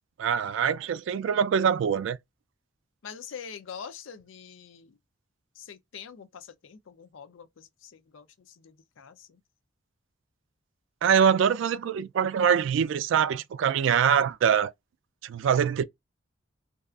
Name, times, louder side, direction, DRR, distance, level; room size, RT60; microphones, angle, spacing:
voice 1, 0.2-2.2 11.0-14.7 15.2-15.8, right 7 dB, 70° right, 0.3 m, -24 dB
voice 2, 3.0-5.0 5.5-9.4, left 7 dB, 80° left, 0.5 m, -45 dB
2.6 x 2.4 x 2.3 m
head